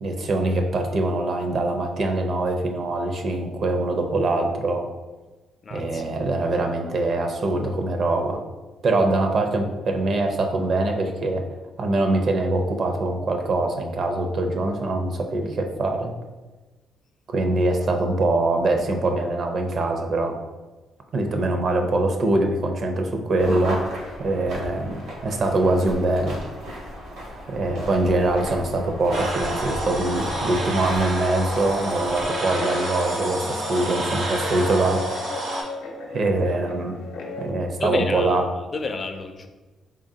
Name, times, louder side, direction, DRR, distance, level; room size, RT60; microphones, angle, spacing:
voice 1, 0.0-4.8 5.7-8.4 8.8-11.5 11.8-16.1 17.3-20.3 21.1-23.8 24.2-26.4 27.5-35.0 36.1-36.9 37.4-38.4, right 2 dB, 55° right, 4 dB, 0.5 m, -23 dB
voice 2, 5.6-6.0 37.8-38.4 38.7-39.5, left 3 dB, 40° left, 7 dB, 0.4 m, -30 dB
sound 1, 23.4-32.3, equal, 90° right, 1.5 m, -35 dB
sound 2, 29.1-35.6, right 1 dB, 75° right, 1.3 m, -29 dB
Guitar, 32.1-37.5, left 2 dB, 85° left, 0.6 m, -36 dB
3.8 x 3.4 x 2.7 m, 1.2 s
cardioid pair, 90°, 0 cm